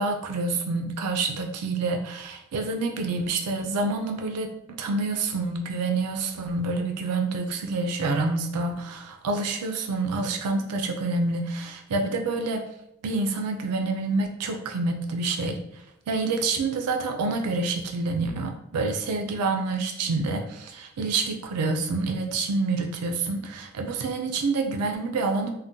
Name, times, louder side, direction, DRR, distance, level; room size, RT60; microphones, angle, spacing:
voice 1, 0.0-4.5 4.8-12.6 13.0-15.6 16.1-25.5, right 3 dB, 90° right, 4 dB, 0.4 m, -27 dB
3.6 x 2.1 x 2.6 m, 0.81 s
head